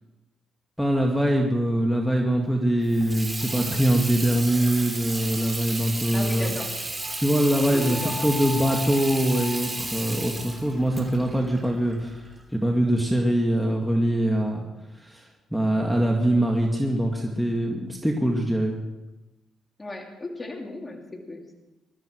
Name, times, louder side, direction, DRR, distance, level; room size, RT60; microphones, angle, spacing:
voice 1, 0.8-6.6 7.2-14.7 14.9-18.7, right 1 dB, ahead, 0 dB, 2.0 m, -23 dB
Water tap faucet / Sink (filling or washing), 2.8-12.4, right 2 dB, 20° right, 3.6 m, -33 dB
voice 2, 6.1-6.7 7.7-8.3 19.8-21.5, left 2 dB, 20° left, 1 dB, 3.1 m, -36 dB
Wind instrument woodwind instrument, 7.0-11.4, left 4 dB, 60° left, 5.7 m, -39 dB
21.5 x 13.5 x 4.7 m, 1.0 s
cardioid pair, 90°, 0 cm